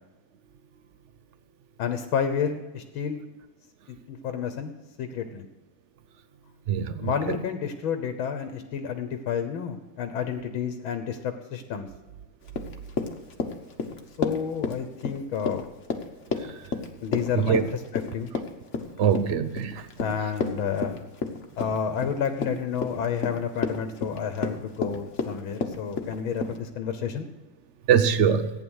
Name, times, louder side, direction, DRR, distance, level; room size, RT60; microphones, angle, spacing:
voice 1, 1.8-3.2 3.9-4.7 5.0-5.5 7.0-11.9 14.2-15.7 17.0-17.6 17.9-18.3 20.0-21.1 21.6-27.3, left 7 dB, 85° left, 8 dB, 1.8 m, -30 dB
voice 2, 6.7-7.4 17.3-17.6 19.0-19.9 27.9-28.5, right 8 dB, 65° right, 12 dB, 0.7 m, -23 dB
Run, 12.5-26.6, left 4 dB, 45° left, 1.3 m, -32 dB
15.0 x 9.6 x 6.3 m, 1.2 s
omnidirectional pair, 2.2 m